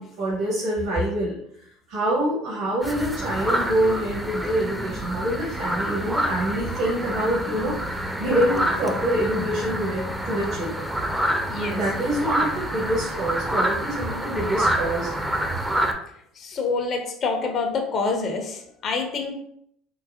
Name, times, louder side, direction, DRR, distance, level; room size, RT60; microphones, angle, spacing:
voice 1, 0.0-1.4 1.9-10.8 11.7-15.1, right 1 dB, 70° right, -6 dB, 1.3 m, -26 dB
sound 1, 2.8-15.9, right 1 dB, 5° right, 0.5 m, -27 dB
voice 2, 11.5-11.8 16.3-19.3, left 4 dB, 50° left, 4 dB, 0.7 m, -27 dB
3.8 x 2.1 x 2.8 m, 0.70 s
hypercardioid pair, 75°, 0 cm